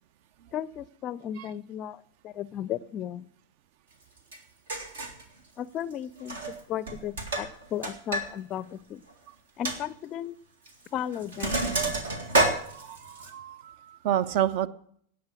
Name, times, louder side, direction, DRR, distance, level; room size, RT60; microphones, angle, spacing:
voice 1, 0.5-3.3 5.6-9.0 9.6-10.3 10.9-11.9, left 10 dB, 35° left, 20 dB, 0.4 m, -35 dB
Sink (filling or washing), 4.3-4.4 4.7-5.2 6.2-6.6 6.9-8.3 8.6-8.7 9.1-9.2 9.6-9.8 10.7-10.9 11.1-13.3, right 2 dB, 65° right, 1.9 m, -28 dB
voice 2, 12.5-14.7, right 11 dB, 50° right, 20 dB, 0.6 m, -30 dB
17.5 x 7.1 x 6.2 m, 0.65 s
figure-of-eight pair, 90°, 0 cm